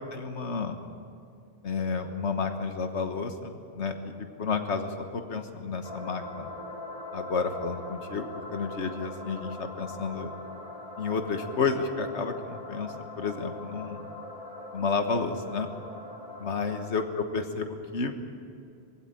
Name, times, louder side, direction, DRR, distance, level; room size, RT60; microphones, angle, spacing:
voice 1, 0.1-0.8 1.6-6.5 7.1-10.3 11.0-14.0 14.7-15.7 16.4-18.2, left 4 dB, 90° left, 6 dB, 1.7 m, -31 dB
sound 1, 5.8-16.9, left 2 dB, 35° right, 2.4 m, -41 dB
21.5 x 16.0 x 9.1 m, 2.4 s
omnidirectional pair, 1.1 m